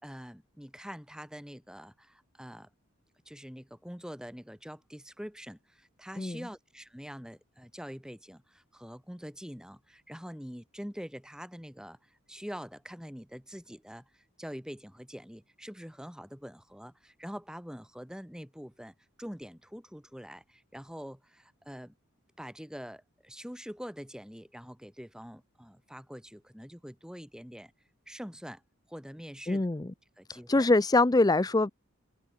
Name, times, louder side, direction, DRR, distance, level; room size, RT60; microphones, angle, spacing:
voice 1, 0.0-2.7 3.2-21.9 22.4-27.7 28.1-28.6 28.9-29.6 30.2-30.7, equal, 5° right, 6.7 m, -45 dB
voice 2, 29.5-29.9 30.3-31.7, left 2 dB, 15° left, 0.5 m, -24 dB
head